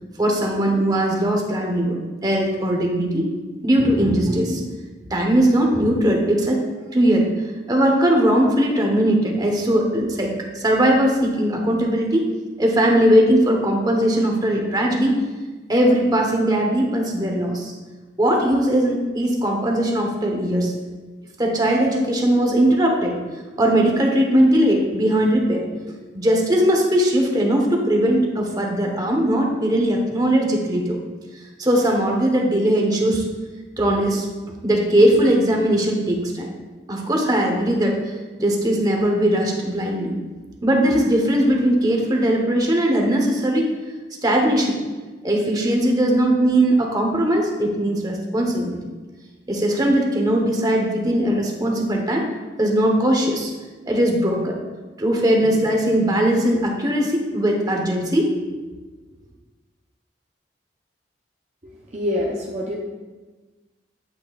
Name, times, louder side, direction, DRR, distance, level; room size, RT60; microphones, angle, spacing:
voice 1, 0.2-3.3 3.6-4.8 5.1-6.6 6.9-7.3 7.7-12.3 12.6-15.1 15.7-17.7 18.2-20.7 21.4-23.2 23.6-25.6 26.1-31.0 31.6-33.3 33.8-34.3 34.6-36.5 36.9-38.1 38.4-40.2 40.6-43.7 44.2-44.8 45.2-48.8 49.5-52.3 52.6-53.5 53.9-54.6 55.0-58.3, right 1 dB, 20° right, 1 dB, 1.1 m, -19 dB
voice 2, 61.6-62.8, left 1 dB, 40° right, -4 dB, 0.8 m, -26 dB
8.6 x 8.5 x 2.5 m, 1.3 s
head